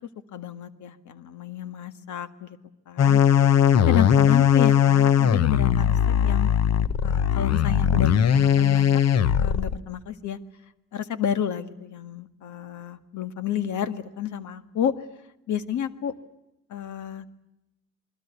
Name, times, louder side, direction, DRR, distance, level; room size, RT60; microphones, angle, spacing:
voice 1, 0.3-2.6 2.9-3.2 3.9-6.5 7.0-8.9 9.4-10.4 10.9-14.9 15.5-16.2 16.7-17.3, left 9 dB, 75° left, 11 dB, 1.8 m, -30 dB
sound 1, 3.0-9.7, left 9 dB, 60° left, 1.1 m, -19 dB
28.5 x 21.0 x 8.2 m, 0.92 s
cardioid pair, 90°, 30 cm